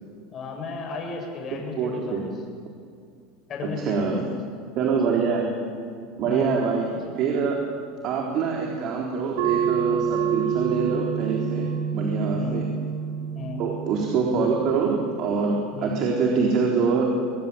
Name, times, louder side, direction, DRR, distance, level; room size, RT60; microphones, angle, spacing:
voice 1, 0.3-2.3 3.5-4.4 4.8-5.0 6.2-6.5 12.3-12.6 13.3-13.6 15.7-15.9, left 3 dB, 35° left, 1 dB, 7.7 m, -34 dB
voice 2, 1.8-2.2 3.6-4.2 4.8-5.6 6.2-7.7 8.0-12.7 13.6-17.2, right 5 dB, 50° right, 0 dB, 4.0 m, -25 dB
sound 1, 9.4-14.5, right 7 dB, 70° right, 3.3 m, -27 dB
25.5 x 20.0 x 8.8 m, 2.3 s
supercardioid pair, 125°, 0 cm